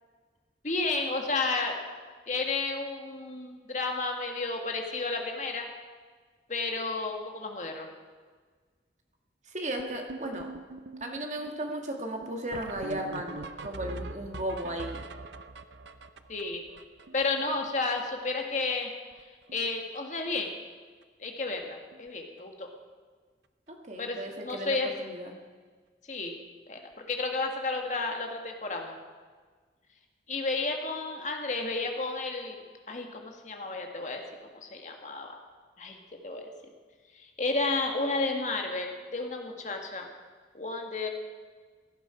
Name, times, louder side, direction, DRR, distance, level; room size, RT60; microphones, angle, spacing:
voice 1, 0.6-1.8 2.3-5.7 6.5-7.9 16.3-16.6 17.1-18.9 19.5-20.5 21.2-22.7 24.0-24.9 26.1-26.3 26.7-26.8 27.1-28.9 30.3-32.6 32.9-34.2 34.6-35.4 35.8-36.0 36.2-36.5 37.1-40.1 40.5-41.1, left 3 dB, 40° left, 3 dB, 1.7 m, -32 dB
voice 2, 9.5-10.5 11.0-15.1 23.7-25.3, right 1 dB, 40° right, 2 dB, 1.8 m, -35 dB
sound 1, 9.8-18.0 18.3-18.4 18.6-18.8 19.1-19.7 20.0-20.2 21.0-21.1 21.5-21.6 21.9-22.1 24.3-24.4 26.8-26.9, right 2 dB, 80° right, 0.7 m, -43 dB
16.0 x 11.5 x 5.0 m, 1.5 s
head